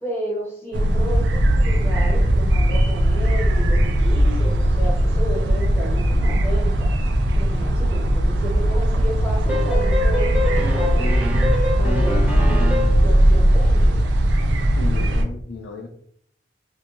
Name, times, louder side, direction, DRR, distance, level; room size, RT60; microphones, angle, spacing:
voice 1, 0.0-6.9 7.3-11.1 11.7-12.7 13.0-14.0, equal, 15° left, -6 dB, 1.1 m, -32 dB
sound 1, 0.7-15.2, right 1 dB, 80° right, 0.4 m, -18 dB
sound 2, 9.5-13.1, left 1 dB, 5° right, 0.4 m, -26 dB
voice 2, 12.1-12.7 14.8-15.9, left 3 dB, 85° left, 0 dB, 0.4 m, -34 dB
2.3 x 2.1 x 2.9 m, 0.65 s
head